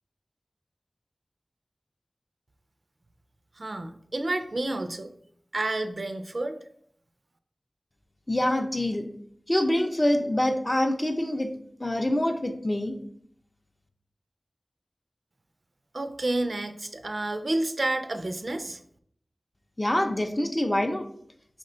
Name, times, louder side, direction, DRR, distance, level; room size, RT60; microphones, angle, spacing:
voice 1, 3.6-5.1 5.5-6.6 15.9-18.8, right 2 dB, 65° right, 8 dB, 0.4 m, -30 dB
voice 2, 8.3-9.1 9.5-11.5 11.8-13.0 19.8-21.0, left 1 dB, 25° left, 5 dB, 0.5 m, -25 dB
5.4 x 2.2 x 3.7 m, 0.65 s
wide cardioid pair, 55°, 0 cm